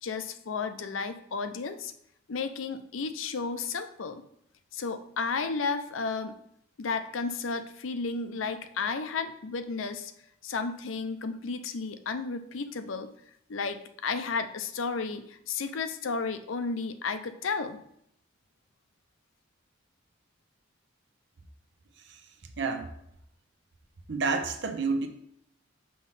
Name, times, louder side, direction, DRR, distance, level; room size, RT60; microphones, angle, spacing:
voice 1, 0.0-1.9 2.3-4.2 4.7-6.4 6.8-10.1 10.4-13.1 13.5-17.8, left 4 dB, 70° left, 9 dB, 0.5 m, -33 dB
voice 2, 24.1-25.1, right 4 dB, 60° right, 6 dB, 0.7 m, -28 dB
5.7 x 3.1 x 5.6 m, 0.72 s
head